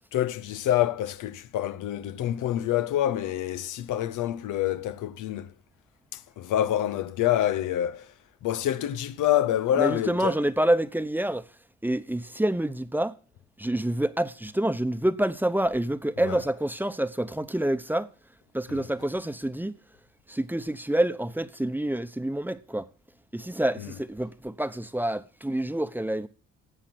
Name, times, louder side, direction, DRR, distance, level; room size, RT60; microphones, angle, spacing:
voice 1, 0.1-5.5 6.1-8.1 8.4-10.4 16.2-16.4 18.7-18.9 23.8-23.9, left 12 dB, 85° left, 0.9 m, -27 dB
voice 2, 9.8-11.4 11.8-13.1 13.6-18.1 18.5-19.7 20.3-22.9 23.3-26.3, right 1 dB, 5° right, 1.0 m, -27 dB
16.5 x 7.9 x 6.0 m
cardioid pair, 90°, 30 cm